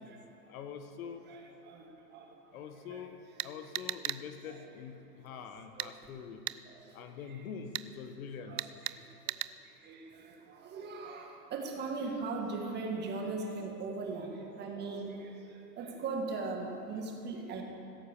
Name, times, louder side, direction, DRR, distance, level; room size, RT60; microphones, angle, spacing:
voice 1, 0.5-1.3 2.5-6.4 6.9-8.6, left 7 dB, 55° left, 7 dB, 1.4 m, -45 dB
sound 1, 3.4-4.2 5.8-5.9 6.5-6.6 7.7-7.9 8.6-9.0 9.3-9.5, right 15 dB, 65° right, 0.6 m, -36 dB
voice 2, 10.7-15.3 15.8-17.6, right 3 dB, 20° right, 2 dB, 1.7 m, -38 dB
16.0 x 8.0 x 6.7 m, 2.8 s
hypercardioid pair, 140°, 49 cm